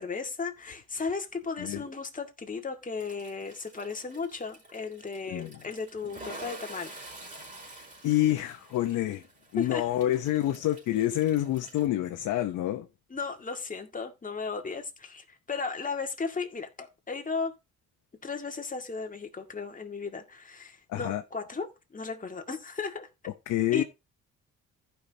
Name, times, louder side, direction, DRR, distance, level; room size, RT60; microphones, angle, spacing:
voice 1, 0.0-6.9 9.1-9.2 9.6-9.8 13.1-17.5 18.2-23.1 23.7-23.8, left 4 dB, 25° left, 1.9 m, -35 dB
Toilet flush, 3.0-11.9, right 1 dB, 25° right, 4.4 m, -48 dB
voice 2, 8.0-9.2 9.5-12.9 20.9-21.2 23.5-23.8, left 13 dB, 85° left, 0.9 m, -27 dB
15.0 x 5.8 x 2.8 m
cardioid pair, 90°, 30 cm